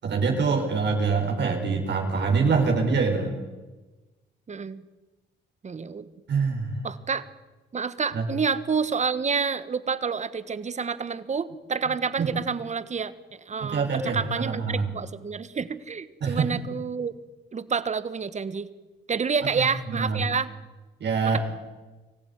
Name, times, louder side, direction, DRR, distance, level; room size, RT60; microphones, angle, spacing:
voice 1, 0.0-3.3 6.3-6.7 8.1-8.3 11.9-12.3 13.6-14.9 16.2-16.6 19.5-20.3 21.0-21.4, right 4 dB, 60° right, 2 dB, 4.9 m, -25 dB
voice 2, 4.5-4.8 5.6-6.1 6.8-7.3 7.7-13.1 13.5-17.1 17.5-18.7 19.1-20.5 21.2-21.4, right 5 dB, 35° right, 15 dB, 1.4 m, -28 dB
24.0 x 15.0 x 9.6 m, 1.2 s
cardioid pair, 90°, 20 cm